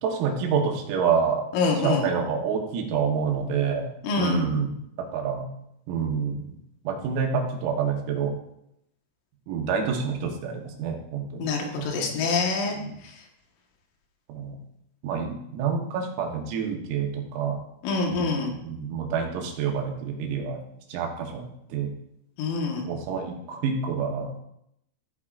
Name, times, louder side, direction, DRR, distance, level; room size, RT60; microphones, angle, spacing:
voice 1, 0.0-1.4 1.8-4.8 5.1-5.5 5.9-6.4 6.9-8.3 9.5-11.5 11.8-12.1 12.7-13.0 14.3-14.6 15.0-17.6 18.1-20.6 20.9-21.9 22.8-24.4, right 6 dB, 85° right, 2 dB, 4.0 m, -28 dB
voice 2, 1.5-2.1 4.0-4.5 11.4-12.8 17.8-18.5 22.4-22.9, left 4 dB, 75° left, 0 dB, 3.9 m, -25 dB
15.5 x 8.6 x 2.5 m, 0.78 s
omnidirectional pair, 5.9 m